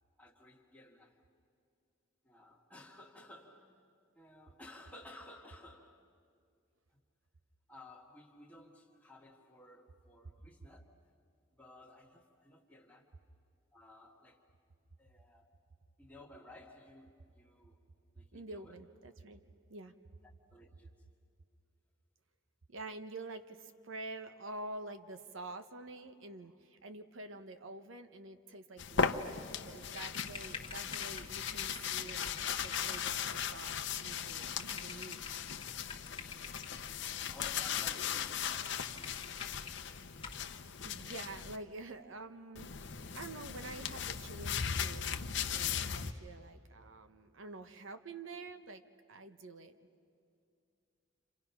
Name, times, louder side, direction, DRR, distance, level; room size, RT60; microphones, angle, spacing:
voice 1, 0.2-1.2 2.2-6.1 7.7-11.1 11.5-13.2 13.7-14.5 15.0-15.5 16.0-17.8 18.1-18.8 20.5-20.9 30.7-30.9 37.3-39.7, left 1 dB, 5° left, 1.9 m, -56 dB
voice 2, 18.3-19.4 19.7-19.9 22.7-35.2 40.8-48.8 49.1-49.9, right 2 dB, 65° right, 0.9 m, -48 dB
sound 1, 28.8-41.6 42.5-46.1, left 7 dB, 55° left, 0.8 m, -38 dB
sound 2, 30.1-36.8 37.4-37.9 38.2-38.3 38.6-39.8 40.2-40.5, left 5 dB, 25° left, 1.7 m, -48 dB
30.0 x 27.0 x 5.8 m
head